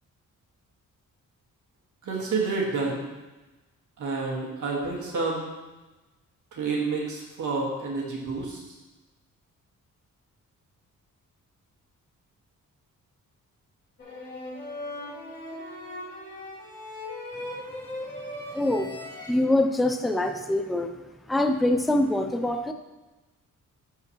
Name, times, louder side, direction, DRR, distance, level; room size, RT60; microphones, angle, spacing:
voice 1, 2.0-3.0 4.0-5.5 6.5-8.8, right 3 dB, 70° right, -3 dB, 2.0 m, -29 dB
sound 1, 14.0-19.3, left 1 dB, 35° left, 2.7 m, -38 dB
voice 2, 18.5-18.9 19.3-20.9 21.3-22.7, left 1 dB, ahead, 6 dB, 0.3 m, -24 dB
12.5 x 4.8 x 3.2 m, 1.1 s
wide cardioid pair, 180°, 32 cm